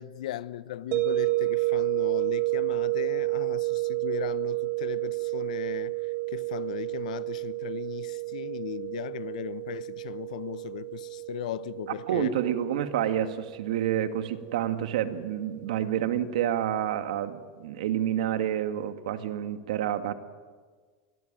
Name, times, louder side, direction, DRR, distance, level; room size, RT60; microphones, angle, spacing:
voice 1, 0.0-12.3, left 12 dB, 85° left, 1.0 m, -37 dB
sound 1, 0.9-15.8, right 22 dB, 55° right, 2.1 m, -31 dB
voice 2, 12.1-20.1, right 10 dB, 85° right, 2.0 m, -28 dB
27.5 x 21.5 x 9.1 m
supercardioid pair, 145°, 4 cm